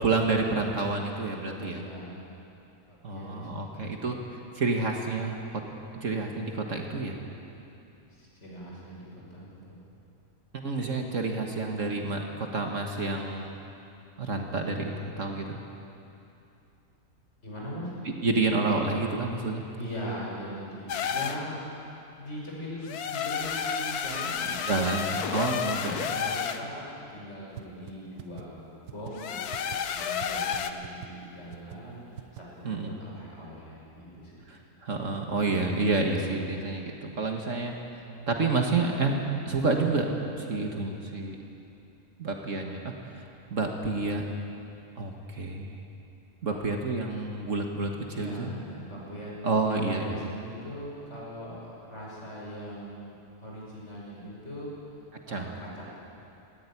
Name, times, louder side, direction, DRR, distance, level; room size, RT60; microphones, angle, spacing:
voice 1, 0.0-1.8 3.0-5.4 6.0-7.2 10.5-13.6 14.2-15.6 18.2-19.7 24.7-26.2 32.6-33.0 34.5-39.2 39.5-40.1 40.4-41.4 42.2-44.3 45.0-45.8 46.4-48.6 49.4-50.2 55.3-55.5, right 3 dB, 55° right, 2 dB, 1.8 m, -29 dB
voice 2, 1.5-2.2 2.9-3.7 8.0-9.8 17.4-17.9 19.7-21.6 22.1-25.3 25.9-28.6 28.9-34.4 46.4-46.6 48.1-54.7 55.0-55.9, equal, 45° left, -5 dB, 6.4 m, -41 dB
sound 1, 20.9-21.4 22.8-26.6 29.1-30.7, left 7 dB, 80° left, 1.4 m, -31 dB
sound 2, 27.6-27.7 27.9-28.0 28.2-28.4 28.9-29.1 29.5-29.8 30.2-30.3 30.5-30.6 30.8-31.1 31.5-31.8 32.2-32.4, right 15 dB, 85° right, 1.2 m, -41 dB
17.5 x 15.5 x 9.9 m, 2.8 s
omnidirectional pair, 1.6 m